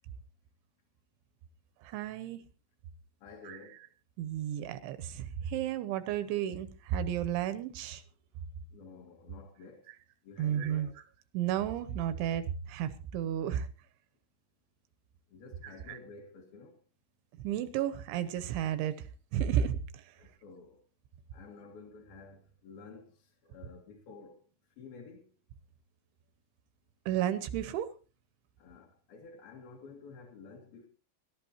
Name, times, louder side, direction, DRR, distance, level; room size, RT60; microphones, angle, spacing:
voice 1, 1.8-2.4 3.4-3.6 4.2-8.0 10.4-10.9 11.3-13.7 15.6-16.0 17.4-19.0 19.3-20.0 27.1-27.9, right 10 dB, 80° right, 2.8 m, -32 dB
voice 2, 3.2-3.8 8.7-9.8 10.3-10.9 15.3-16.7 20.2-20.7 21.3-23.1 23.5-24.4 24.8-25.2 28.6-30.9, left 4 dB, 60° left, 2.9 m, -51 dB
23.0 x 12.0 x 2.9 m
omnidirectional pair, 5.9 m